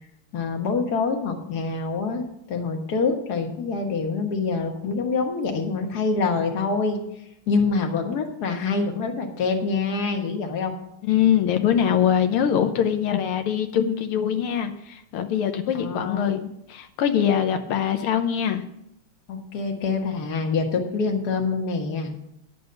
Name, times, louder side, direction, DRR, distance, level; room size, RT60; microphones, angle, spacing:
voice 1, 0.3-7.0 7.5-10.7 15.7-16.3 19.3-22.1, left 4 dB, 50° left, 3 dB, 1.9 m, -25 dB
voice 2, 11.0-18.6, left 9 dB, 85° left, 7 dB, 1.7 m, -23 dB
10.5 x 6.7 x 6.7 m, 0.80 s
omnidirectional pair, 2.4 m